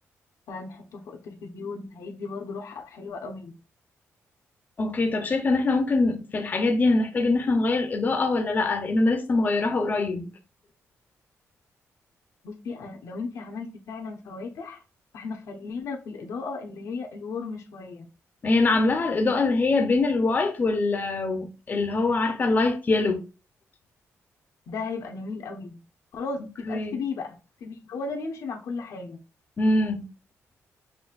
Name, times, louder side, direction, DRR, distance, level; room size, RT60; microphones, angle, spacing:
voice 1, 0.5-3.5 12.4-14.8 15.1-18.1 24.7-25.8 26.1-29.2, left 4 dB, 90° left, 0.9 m, -35 dB
voice 2, 4.8-10.3 18.4-23.2 26.7-27.0 29.6-30.1, left 3 dB, 35° left, 0.7 m, -23 dB
6.2 x 2.7 x 2.4 m
cardioid pair, 125°, 5 cm